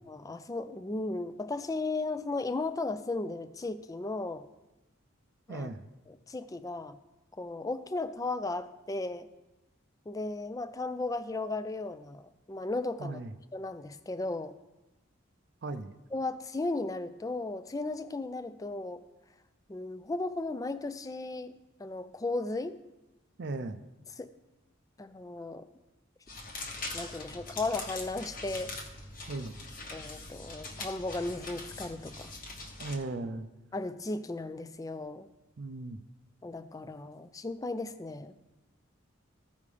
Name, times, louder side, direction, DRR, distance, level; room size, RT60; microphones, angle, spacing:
voice 1, 0.1-4.5 5.5-5.7 6.1-7.0 7.4-9.3 10.1-13.2 13.5-14.6 16.1-19.0 19.7-22.8 24.2-24.3 25.0-25.7 26.9-28.7 29.9-32.3 33.7-35.3 36.4-38.3, left 2 dB, 15° left, 11 dB, 0.3 m, -35 dB
voice 2, 5.5-5.8 13.0-13.3 15.6-15.9 23.4-23.8 29.3-29.5 32.8-33.5 35.6-36.0, right 2 dB, 55° right, 9 dB, 0.5 m, -37 dB
sound 1, 26.3-33.0, left 2 dB, 40° left, 1.1 m, -42 dB
15.0 x 5.3 x 3.3 m, 1.0 s
head